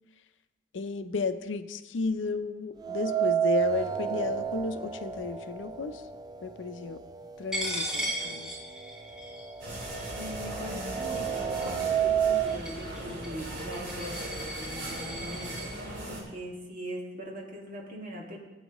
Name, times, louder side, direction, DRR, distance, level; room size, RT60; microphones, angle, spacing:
voice 1, 0.7-6.0 6.4-7.0 7.4-8.5, left 4 dB, 85° left, 11 dB, 0.5 m, -33 dB
sound 1, 2.8-6.9 7.2-7.3 8.3-8.4 8.8-12.6, right 9 dB, 20° right, 0.3 m, -30 dB
Coin (dropping), 7.5-15.7, equal, 5° right, 3.7 m, -38 dB
sound 2, 9.6-16.2, right 1 dB, 70° right, 3.7 m, -38 dB
voice 2, 10.1-15.6 16.1-18.4, equal, 50° right, -2 dB, 2.0 m, -41 dB
15.5 x 8.6 x 3.0 m, 1.1 s
head